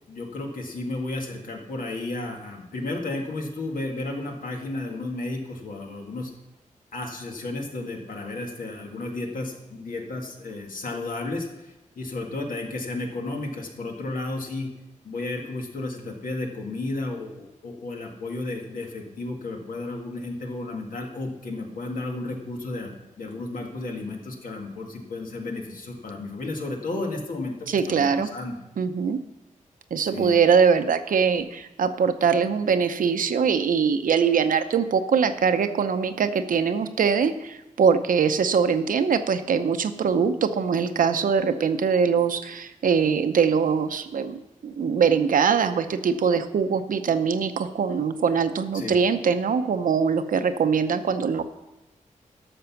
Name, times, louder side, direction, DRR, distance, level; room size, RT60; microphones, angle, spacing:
voice 1, 0.1-6.3 6.9-14.7 15.0-22.9 23.2-27.5 27.9-28.6 30.0-30.3 48.7-48.9, left 2 dB, 85° left, 1 dB, 1.9 m, -33 dB
voice 2, 27.7-28.3 28.8-29.2 29.9-51.4, right 6 dB, 90° right, 9 dB, 0.7 m, -22 dB
12.0 x 6.8 x 5.8 m, 1.0 s
wide cardioid pair, 130°, 14 cm